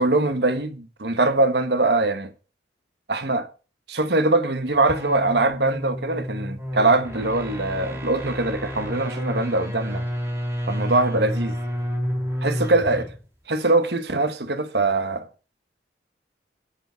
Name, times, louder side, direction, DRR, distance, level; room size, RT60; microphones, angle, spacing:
voice 1, 0.0-2.3 3.1-3.5 3.9-10.0 10.7-11.6 12.4-13.0 13.5-15.3, right 2 dB, 70° right, 1.3 m, -22 dB
sound 1, 4.7-13.2, equal, 15° right, 4.4 m, -30 dB
8.9 x 7.1 x 6.8 m
head